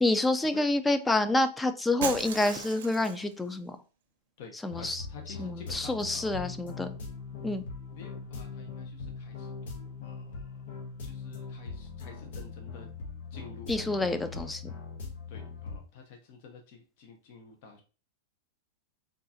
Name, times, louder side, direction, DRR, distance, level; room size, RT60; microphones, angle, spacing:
voice 1, 0.0-3.8 4.6-5.0 5.4-7.0 7.4-7.6 13.7-14.6, left 2 dB, 10° left, 10 dB, 0.3 m, -28 dB
Shatter, 2.0-3.4, right 7 dB, 75° right, 0.6 m, -36 dB
voice 2, 4.4-6.4 7.9-10.6 11.0-12.9 13.3-14.5 15.3-17.8, left 4 dB, 60° left, 3 dB, 0.7 m, -50 dB
sound 1, 4.7-15.8, left 4 dB, 80° left, 1.0 m, -41 dB
3.7 x 2.4 x 2.6 m, 0.35 s
hypercardioid pair, 120°, 0 cm